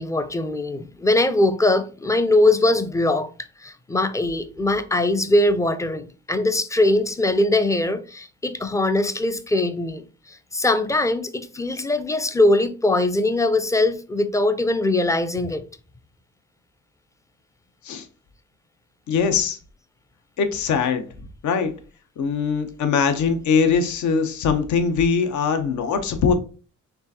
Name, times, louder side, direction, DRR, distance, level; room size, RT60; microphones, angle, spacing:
voice 1, 0.0-3.3 3.6-15.6, left 2 dB, 10° left, 0.4 m, -21 dB
voice 2, 19.1-19.6 20.4-21.1 21.4-21.7 22.2-26.3, left 5 dB, 70° left, 0.8 m, -21 dB
4.5 x 3.2 x 2.7 m
cardioid pair, 90°, 30 cm